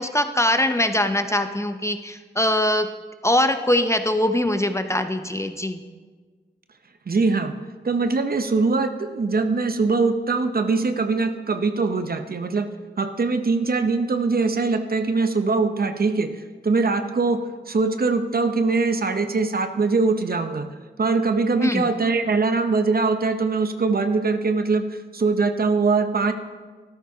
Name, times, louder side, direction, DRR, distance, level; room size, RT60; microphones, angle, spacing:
voice 1, 0.0-2.9 3.2-5.8 21.6-21.9, left 1 dB, 15° left, 8 dB, 0.6 m, -22 dB
voice 2, 7.1-7.6 7.8-12.7 13.0-16.3 16.6-20.7 21.0-26.3, right 4 dB, 55° right, 8 dB, 0.8 m, -22 dB
13.0 x 12.5 x 2.8 m, 1.4 s
wide cardioid pair, 65°, 19 cm